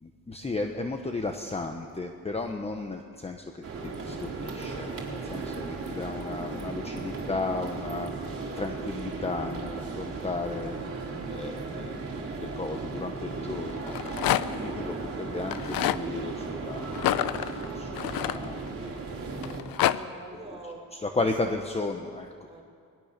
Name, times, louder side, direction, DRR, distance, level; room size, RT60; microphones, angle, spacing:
voice 1, 0.0-3.6 4.0-8.1 8.5-10.7 11.3-12.0 12.3-14.2 14.5-16.9 17.7-18.6 21.0-22.3, left 3 dB, 20° left, 5 dB, 1.2 m, -34 dB
sound 1, 3.6-19.6, right 3 dB, 40° right, 3.8 m, -36 dB
Rattle, 13.8-14.7 15.4-16.0 16.9-18.9 19.4-20.0, left 13 dB, 85° left, 0.8 m, -27 dB
voice 2, 19.7-21.3 22.5-22.6, right 2 dB, 15° right, -1 dB, 5.1 m, -45 dB
26.5 x 20.5 x 6.8 m, 2.2 s
cardioid pair, 135°, 34 cm